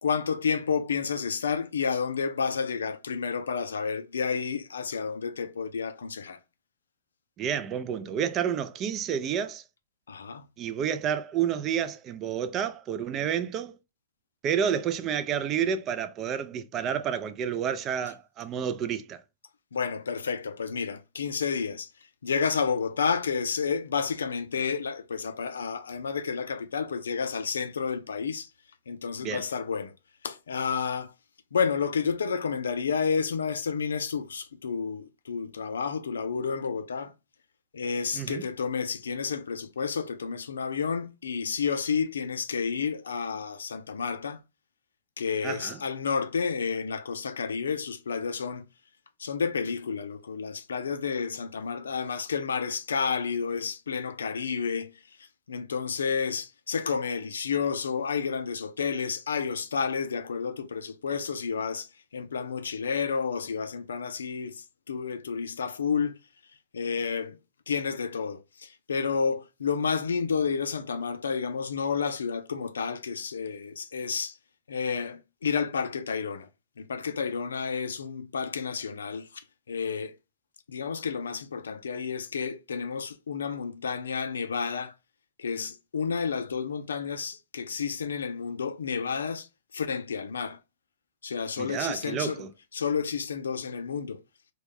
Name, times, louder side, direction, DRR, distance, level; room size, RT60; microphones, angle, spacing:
voice 1, 0.0-6.4 10.1-10.4 19.7-21.9 22.2-28.5 28.9-29.9 30.2-31.1 31.5-37.1 37.7-44.4 45.2-48.6 49.2-54.9 55.5-66.2 66.7-67.4 67.7-74.4 74.7-76.5 76.8-80.2 80.7-84.9 85.4-89.5 89.7-90.6 91.2-92.5 92.7-94.2, left 6 dB, 85° left, 0.4 m, -30 dB
voice 2, 7.4-9.6 10.6-13.7 14.4-19.2 29.2-29.5 38.1-38.4 45.4-45.8 91.6-92.5, right 8 dB, 35° right, 0.4 m, -30 dB
2.2 x 2.2 x 3.3 m
hypercardioid pair, 110°, 0 cm